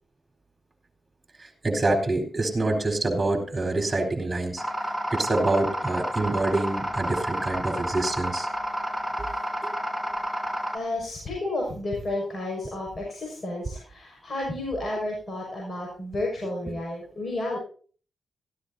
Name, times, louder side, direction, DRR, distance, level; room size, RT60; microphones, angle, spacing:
voice 1, 1.4-4.6 5.1-8.5, right 2 dB, 30° right, 3 dB, 4.1 m, -26 dB
sound 1, 4.6-10.8, equal, 10° left, 2.5 m, -30 dB
voice 2, 10.7-17.6, left 2 dB, 45° left, -2 dB, 5.9 m, -31 dB
16.5 x 14.0 x 2.8 m, 0.43 s
supercardioid pair, 45°, 0 cm